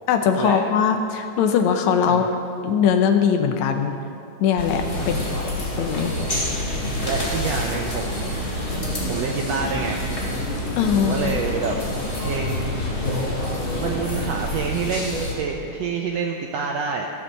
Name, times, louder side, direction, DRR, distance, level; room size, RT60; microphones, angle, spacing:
voice 1, 0.1-2.3 2.6-4.0 4.4-5.2 5.4-5.5 5.8-6.1 10.8-11.1, left 7 dB, 70° left, 6 dB, 1.9 m, -20 dB
sound 1, 4.6-15.3, left 1 dB, 25° left, 1.4 m, -27 dB
voice 2, 7.0-8.4 9.1-10.0 11.0-11.8 12.2-12.9 13.8-17.1, right 5 dB, 80° right, 2 dB, 1.4 m, -28 dB
14.0 x 7.3 x 6.6 m, 2.8 s
omnidirectional pair, 3.7 m